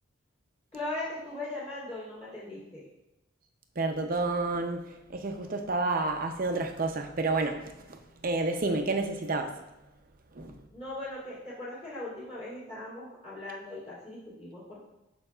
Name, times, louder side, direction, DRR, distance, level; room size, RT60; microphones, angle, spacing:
voice 1, 0.7-2.9 10.7-14.8, left 2 dB, 30° left, -9 dB, 2.5 m, -39 dB
voice 2, 3.8-4.8 5.1-7.6 8.2-9.5 10.4-10.5, right 3 dB, 45° right, 5 dB, 0.6 m, -29 dB
12.0 x 4.7 x 2.4 m, 0.96 s
head